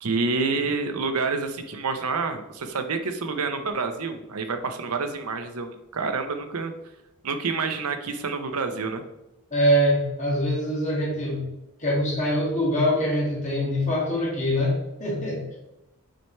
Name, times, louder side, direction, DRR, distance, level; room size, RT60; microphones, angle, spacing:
voice 1, 0.0-6.7 7.2-9.0, right 4 dB, 85° right, 7 dB, 0.8 m, -28 dB
voice 2, 9.5-11.5 11.8-15.6, equal, 35° left, -5 dB, 2.0 m, -24 dB
7.6 x 5.5 x 3.3 m, 0.92 s
head